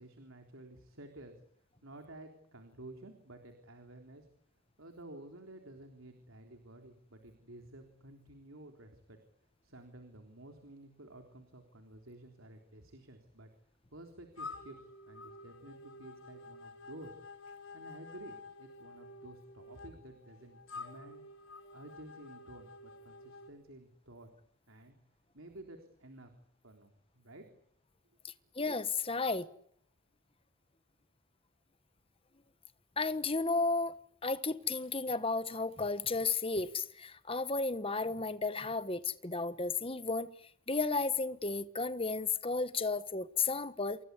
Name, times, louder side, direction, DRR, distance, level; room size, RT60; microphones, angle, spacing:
voice 1, 0.0-1.4 1.8-4.3 4.8-9.2 9.6-13.5 13.9-17.2 17.7-21.2 21.7-24.3 24.7-24.9 25.3-26.3 26.6-27.5, right 1 dB, 70° right, 3.7 m, -52 dB
sound 1, 14.3-23.5, left 3 dB, 75° left, 5.8 m, -50 dB
voice 2, 28.2-29.5 33.0-34.0 34.2-40.3 40.7-44.0, left 3 dB, 25° left, 1.3 m, -33 dB
28.5 x 22.0 x 8.4 m
head